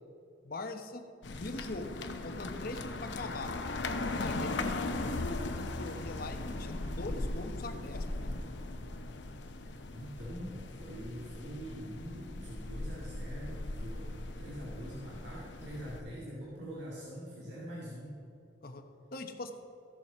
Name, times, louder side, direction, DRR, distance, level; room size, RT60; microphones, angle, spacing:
voice 1, 0.4-1.1 1.4-1.9 2.2-3.5 4.2-8.3 18.6-19.5, left 2 dB, 55° left, 6 dB, 1.0 m, -42 dB
sound 1, 1.2-16.0, left 2 dB, 80° left, 0.8 m, -38 dB
voice 2, 9.7-14.1 14.4-18.2, equal, 70° right, -6 dB, 2.2 m, -44 dB
14.5 x 7.0 x 5.6 m, 2.6 s
head